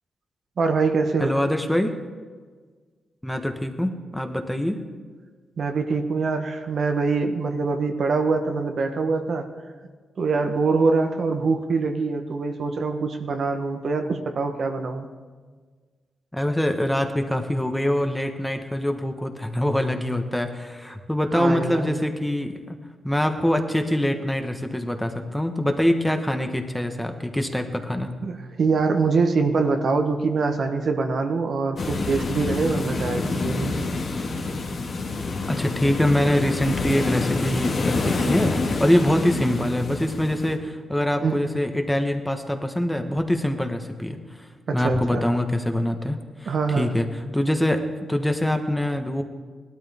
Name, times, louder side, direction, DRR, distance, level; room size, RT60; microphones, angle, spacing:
voice 1, 0.6-1.4 5.6-9.5 10.2-15.1 21.3-22.0 28.2-33.7 41.2-41.6 44.7-45.3 46.5-46.9, right 4 dB, 65° right, 5 dB, 1.1 m, -24 dB
voice 2, 1.2-1.9 3.2-4.8 16.3-22.8 23.0-28.1 35.5-47.1 47.3-49.2, left 1 dB, 5° left, 5 dB, 1.2 m, -24 dB
sound 1, 31.8-40.6, left 3 dB, 60° left, 1.9 m, -27 dB
18.0 x 12.5 x 3.6 m, 1.5 s
cardioid pair, 80°, 0 cm